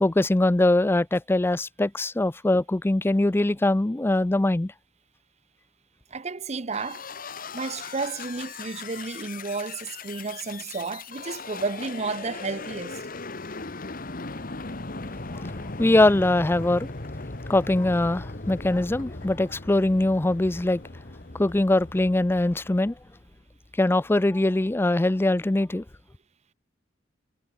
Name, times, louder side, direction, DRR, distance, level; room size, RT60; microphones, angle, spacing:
voice 1, 0.0-4.7 15.3-15.5 15.8-16.9 17.5-20.8 21.3-22.9 23.8-25.8, left 2 dB, 10° left, 0.4 m, -22 dB
voice 2, 6.1-7.0 7.5-13.0, right 4 dB, 35° right, 0.8 m, -32 dB
sound 1, 6.7-23.3, left 3 dB, 50° left, 1.6 m, -38 dB
head